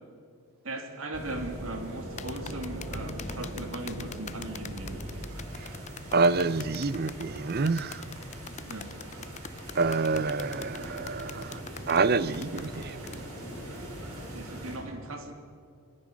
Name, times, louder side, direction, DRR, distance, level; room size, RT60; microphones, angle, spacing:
voice 1, 0.6-5.0 8.6-8.9 14.2-15.3, right 2 dB, 65° right, 2.8 m, -38 dB
sound 1, 1.1-14.8, equal, 85° right, 6.4 m, -40 dB
sound 2, 2.2-13.2, left 7 dB, 30° left, 0.6 m, -44 dB
voice 2, 6.1-8.0 9.8-13.2, right 4 dB, 45° right, 0.5 m, -27 dB
24.5 x 21.5 x 6.3 m
head